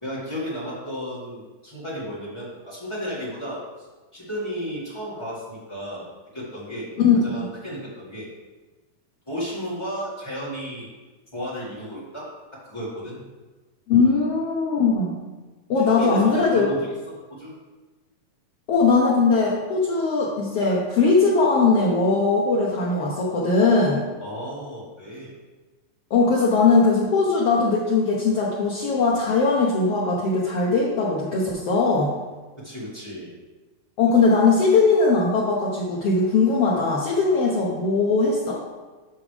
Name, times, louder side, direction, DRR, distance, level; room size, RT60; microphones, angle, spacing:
voice 1, 0.0-3.9 4.1-6.9 7.2-8.3 9.3-10.9 11.3-13.2 15.8-17.5 24.2-25.3 32.6-33.3, equal, 40° left, -8 dB, 0.4 m, -33 dB
voice 2, 13.9-15.1 15.7-16.7 18.7-24.0 26.1-32.1 34.0-38.6, left 4 dB, 90° left, -4 dB, 1.3 m, -20 dB
9.1 x 6.0 x 3.3 m, 1.3 s
omnidirectional pair, 4.0 m